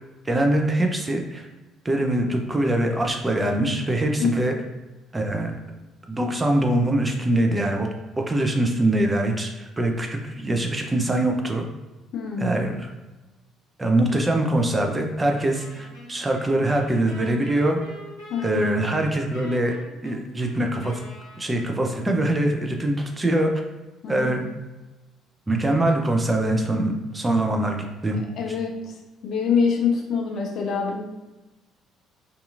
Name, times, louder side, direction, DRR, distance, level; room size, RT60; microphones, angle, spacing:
voice 1, 0.3-1.5 1.8-4.5 5.1-5.6 6.1-7.9 8.3-11.6 12.4-12.9 13.8-17.8 18.4-19.7 20.0-20.9 21.4-23.5 24.1-24.4 25.5-27.8 28.0-28.2, right 1 dB, 20° right, 2 dB, 0.5 m, -23 dB
voice 2, 12.1-12.6 18.3-18.7 24.0-24.5 28.1-29.0 29.2-31.0, left 6 dB, 55° left, 1 dB, 0.5 m, -25 dB
Wind instrument woodwind instrument, 15.5-22.1, equal, 85° right, 1.1 m, -44 dB
2.7 x 2.5 x 2.5 m, 1.1 s
figure-of-eight pair, 50°, 0 cm